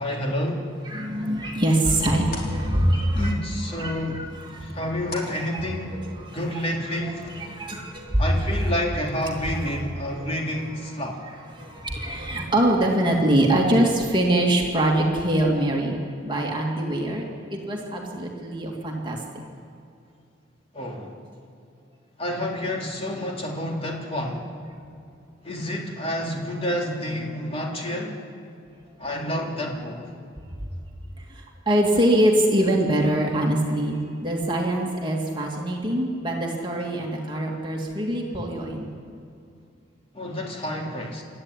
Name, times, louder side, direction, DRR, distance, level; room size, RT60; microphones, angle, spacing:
voice 1, 0.0-0.7 3.1-4.2 4.6-6.0 6.3-7.2 8.2-11.2 20.7-21.1 22.2-24.4 25.4-28.2 29.0-30.2 40.1-41.2, left 1 dB, 30° left, -1 dB, 3.4 m, -29 dB
voice 2, 0.8-3.3 3.7-4.9 5.2-8.3 8.6-9.0 9.3-9.7 10.1-10.3 10.9-16.0 16.2-17.2 17.5-19.2 31.2-38.9, right 1 dB, 25° right, -1 dB, 2.6 m, -24 dB
sound 1, 0.9-6.3, left 2 dB, 50° left, 3.9 m, -44 dB
26.5 x 13.0 x 10.0 m, 2.5 s
head